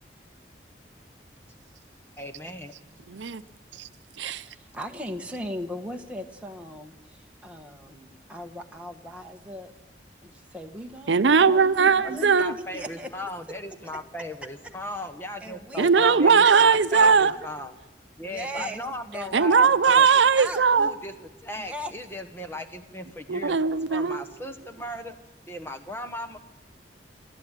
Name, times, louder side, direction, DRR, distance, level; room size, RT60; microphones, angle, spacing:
voice 1, 2.2-2.7 12.1-17.7 18.2-20.1 20.7-23.6 23.9-25.2 25.5-26.4, left 1 dB, 15° left, 5 dB, 1.2 m, -37 dB
voice 2, 3.1-3.4 3.8-3.9 4.2-4.4 11.1-12.5 15.8-17.3 19.3-20.9 23.3-24.2, right 5 dB, 90° right, 13 dB, 0.7 m, -19 dB
voice 3, 4.5-9.7 10.2-11.6 12.1-12.3 12.7-13.1 13.8-14.0 15.4-17.4 18.2-18.8 19.1-20.0 20.4-20.7 21.6-21.9, equal, 5° right, 2 dB, 1.3 m, -38 dB
29.0 x 12.5 x 9.0 m, 1.1 s
head